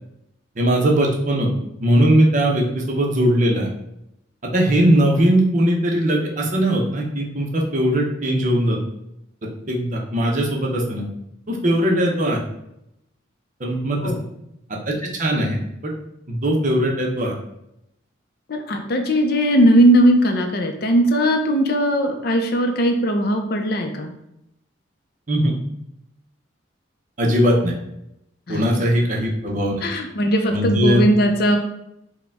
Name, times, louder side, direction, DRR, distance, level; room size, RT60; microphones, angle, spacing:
voice 1, 0.6-1.5 1.8-3.7 4.5-8.8 9.7-11.0 11.5-12.4 13.6-14.1 14.9-15.9 16.3-17.3 25.3-25.5 27.2-27.7 28.5-29.7 30.5-31.0, right 1 dB, 40° right, 0 dB, 0.7 m, -19 dB
voice 2, 18.5-24.1 28.5-28.6 29.8-31.6, equal, 55° left, 4 dB, 0.5 m, -18 dB
4.9 x 2.2 x 3.5 m, 0.82 s
head